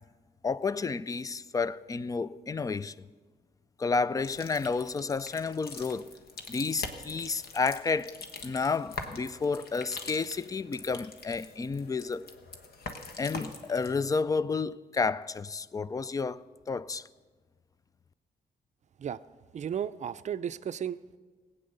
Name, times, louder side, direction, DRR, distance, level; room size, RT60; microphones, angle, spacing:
voice 1, 0.4-3.1 3.8-6.1 6.5-8.2 8.4-12.3 13.2-17.0, left 4 dB, 20° left, 0.3 m, -31 dB
sound 1, 4.2-13.9, left 3 dB, 65° left, 1.3 m, -44 dB
voice 2, 19.5-21.2, right 9 dB, 45° right, 0.4 m, -34 dB
18.0 x 8.8 x 6.7 m
cardioid pair, 120°, 17 cm